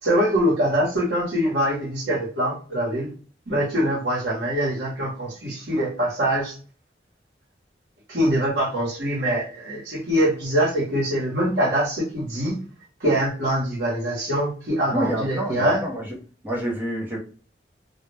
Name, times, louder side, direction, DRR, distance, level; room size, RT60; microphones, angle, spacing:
voice 1, 0.0-3.1 3.5-6.6 8.1-12.5 13.0-15.8, equal, 70° right, -5 dB, 1.0 m, -23 dB
voice 2, 14.9-16.1 16.4-17.2, right 1 dB, 10° right, -1 dB, 0.6 m, -27 dB
2.2 x 2.1 x 3.2 m, 0.40 s
head